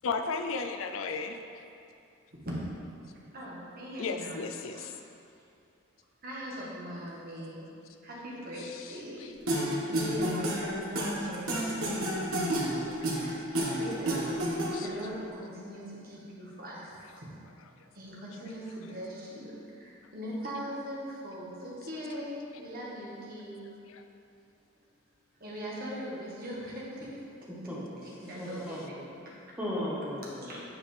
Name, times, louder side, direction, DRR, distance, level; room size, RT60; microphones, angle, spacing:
voice 1, 0.0-1.4 4.0-4.9 8.6-9.3 13.0-13.1 14.7-14.9 23.9-24.0, left 4 dB, 70° left, 6 dB, 0.4 m, -35 dB
voice 2, 3.3-4.9 6.2-7.7 8.0-9.3 9.8-11.9 13.1-14.2 14.5-17.3 17.9-23.7 25.4-27.2 28.0-29.3 30.4-30.6, equal, 45° right, -5 dB, 1.4 m, -41 dB
sound 1, 9.5-15.0, right 1 dB, 80° right, 1.3 m, -30 dB
voice 3, 27.7-28.1 28.4-29.0 29.6-30.6, left 1 dB, 5° right, -6 dB, 1.1 m, -36 dB
8.9 x 5.0 x 3.3 m, 2.6 s
head